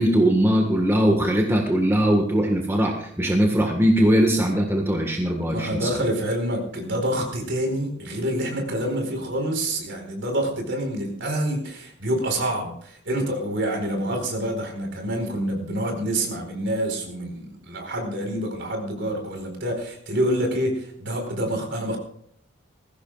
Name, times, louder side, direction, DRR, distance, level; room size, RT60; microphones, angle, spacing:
voice 1, 0.0-5.9, equal, 10° right, 1 dB, 1.5 m, -20 dB
voice 2, 5.5-22.0, right 1 dB, 55° right, 3 dB, 4.5 m, -27 dB
20.5 x 16.0 x 2.4 m, 0.65 s
head